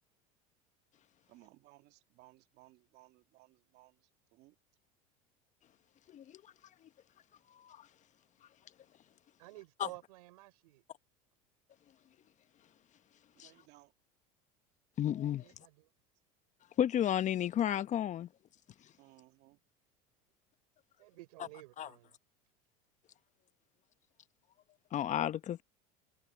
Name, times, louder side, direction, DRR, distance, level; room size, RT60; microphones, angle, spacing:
voice 1, 1.3-3.9 4.3-4.5 13.4-13.9 19.0-19.6, right 19 dB, 60° right, 2.5 m, -61 dB
voice 2, 6.1-6.4 6.8-6.9 7.5-7.9 9.8-9.9 13.4-13.5 15.0-15.5 16.8-18.3 21.8-21.9 24.9-25.6, left 10 dB, 40° left, 1.1 m, -32 dB
voice 3, 9.4-10.8 15.4-15.9 21.0-22.1, right 19 dB, 80° right, 4.6 m, -52 dB
hypercardioid pair, 95°, 19 cm